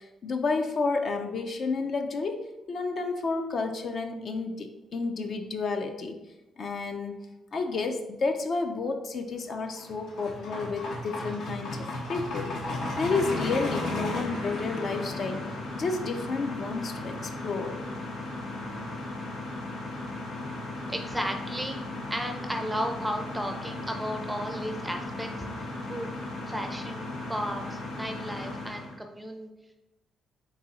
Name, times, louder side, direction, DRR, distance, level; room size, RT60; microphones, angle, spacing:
voice 1, 0.0-6.2 6.6-7.3 7.5-12.5 12.9-15.4 15.7-17.8, left 4 dB, 50° left, 5 dB, 0.4 m, -31 dB
sound 1, 9.5-28.9, left 2 dB, 80° left, 0.9 m, -35 dB
voice 2, 20.9-21.8 22.1-25.3 25.9-26.1 26.5-29.5, equal, 5° right, 5 dB, 0.4 m, -34 dB
4.0 x 2.7 x 4.0 m, 1.0 s
cardioid pair, 90°, 0 cm